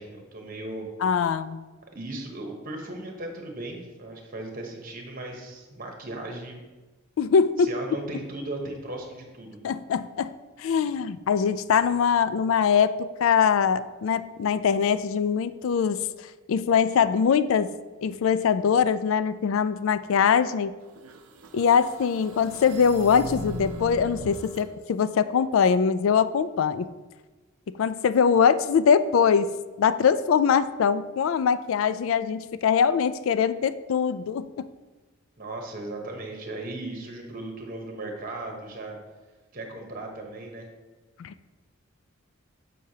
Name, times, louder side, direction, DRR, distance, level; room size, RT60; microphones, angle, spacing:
voice 1, 0.0-0.9 1.9-6.6 7.6-9.6 35.4-39.0 39.5-40.7, right 2 dB, 40° right, 2 dB, 0.9 m, -37 dB
voice 2, 1.0-1.6 7.2-7.7 9.6-10.3 10.6-17.7 18.0-20.8 21.5-26.9 27.8-29.5 29.8-34.7 41.2-41.6, left 6 dB, 70° left, 13 dB, 0.3 m, -22 dB
sound 1, 20.9-24.7, equal, 80° right, 0.6 m, -39 dB
6.8 x 6.4 x 2.8 m, 1.2 s
head